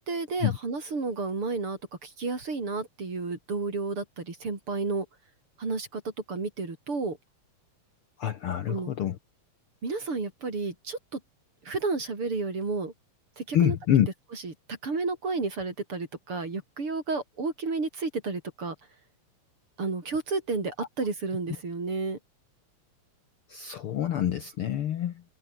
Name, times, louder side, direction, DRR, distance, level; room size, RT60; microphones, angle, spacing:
voice 1, 0.0-5.1 5.6-6.0 6.3-7.2 8.7-8.9 9.8-11.2 11.7-12.9 13.4-13.8 14.3-18.7 19.8-22.2, right 3 dB, 45° right, 5.6 m, -31 dB
voice 2, 8.2-9.2 13.5-14.1 23.5-25.2, left 11 dB, 60° left, 1.6 m, -26 dB
omnidirectional pair, 3.4 m